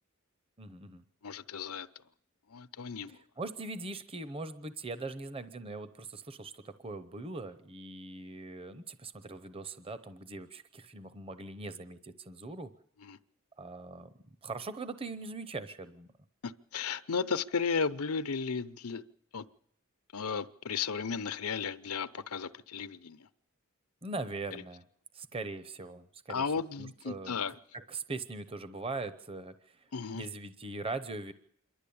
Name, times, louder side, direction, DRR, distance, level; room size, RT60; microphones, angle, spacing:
voice 1, 0.6-1.0 3.1-12.7 13.6-14.1 14.4-16.1 24.0-24.8 25.1-26.5 26.8-27.4 27.7-29.9 30.1-31.3, right 3 dB, 25° right, 12 dB, 0.7 m, -41 dB
voice 2, 1.2-1.9 2.5-3.2 13.0-13.2 16.4-19.0 19.3-19.4 20.1-23.3 24.5-24.6 26.3-27.5 29.9-30.3, left 5 dB, 85° left, 13 dB, 0.8 m, -34 dB
27.0 x 12.0 x 8.6 m, 0.68 s
head